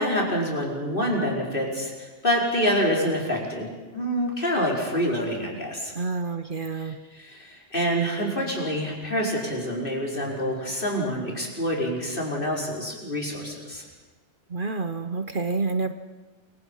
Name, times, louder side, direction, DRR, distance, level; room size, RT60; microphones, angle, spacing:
voice 1, 0.0-3.7 3.9-5.9 6.7-13.8, equal, 45° left, -2 dB, 5.1 m, -27 dB
voice 2, 6.0-7.0 14.5-15.9, right 3 dB, 50° right, 9 dB, 1.1 m, -28 dB
28.0 x 23.5 x 5.6 m, 1.3 s
omnidirectional pair, 1.2 m